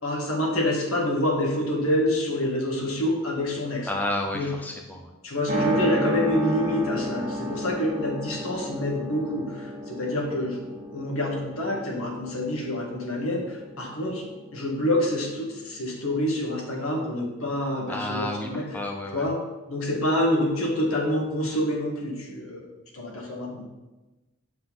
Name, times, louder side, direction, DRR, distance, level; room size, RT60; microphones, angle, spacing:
voice 1, 0.0-3.9 4.3-4.5 5.2-10.6 10.9-14.2 14.5-18.8 19.1-19.4 19.7-23.6, left 1 dB, 75° left, -1 dB, 1.8 m, -27 dB
voice 2, 3.9-5.1 17.9-18.5 18.7-19.3, left 1 dB, 10° left, 1 dB, 0.5 m, -31 dB
sound 1, 5.5-16.3, equal, 40° right, 1.6 m, -33 dB
7.6 x 5.7 x 4.0 m, 1.1 s
head